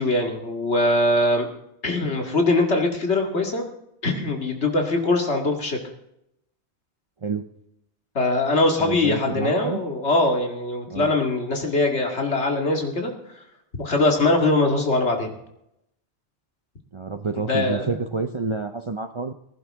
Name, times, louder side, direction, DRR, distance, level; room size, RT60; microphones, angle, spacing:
voice 1, 0.0-1.5 1.8-3.6 4.0-5.8 8.1-13.1 13.8-15.3 17.5-18.0, left 2 dB, 90° left, 2 dB, 2.4 m, -22 dB
voice 2, 8.8-9.8 10.9-11.1 16.9-19.3, right 4 dB, 35° right, 7 dB, 0.5 m, -28 dB
20.0 x 11.0 x 3.6 m, 0.81 s
omnidirectional pair, 1.1 m